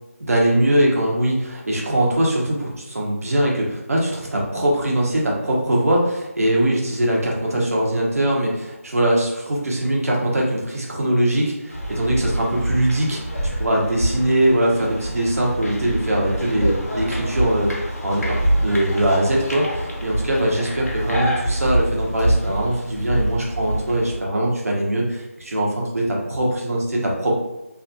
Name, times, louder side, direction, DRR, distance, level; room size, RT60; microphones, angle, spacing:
voice 1, 0.2-13.2 13.6-27.3, right 1 dB, 75° right, -3 dB, 0.8 m, -21 dB
sound 1, 11.7-24.2, right 1 dB, 90° left, 0.9 m, -26 dB
2.6 x 2.2 x 2.6 m, 0.97 s
figure-of-eight pair, 170°, 8 cm